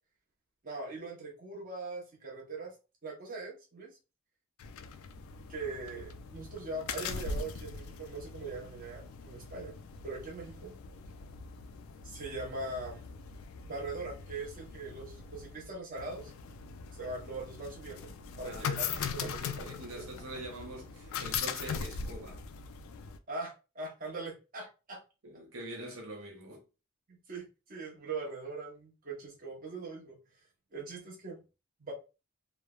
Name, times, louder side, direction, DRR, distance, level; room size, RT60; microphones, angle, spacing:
voice 1, 0.6-2.7 3.0-4.0 5.5-9.8 10.0-10.8 12.0-13.2 13.6-16.3 17.0-18.9 19.1-19.7 19.9-20.1 23.3-25.0 27.1-30.2 30.7-31.4 31.8-31.9, right 3 dB, 40° right, 0.9 m, -41 dB
sound 1, 4.6-23.2, left 6 dB, 80° left, 0.3 m, -41 dB
voice 2, 18.4-22.4 25.2-26.6, right 1 dB, 75° right, 0.7 m, -44 dB
3.1 x 2.1 x 2.3 m
head